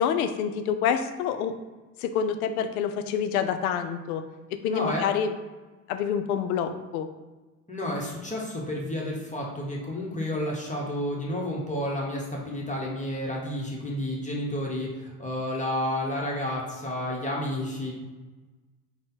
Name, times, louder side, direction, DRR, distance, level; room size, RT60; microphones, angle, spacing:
voice 1, 0.0-1.5 2.0-4.2 4.6-5.3 5.9-7.1, left 7 dB, 75° left, 8 dB, 0.5 m, -27 dB
voice 2, 4.7-5.0 7.7-17.9, left 1 dB, 15° left, -2 dB, 1.0 m, -31 dB
3.9 x 2.2 x 3.9 m, 1.2 s
hypercardioid pair, 60°, 44 cm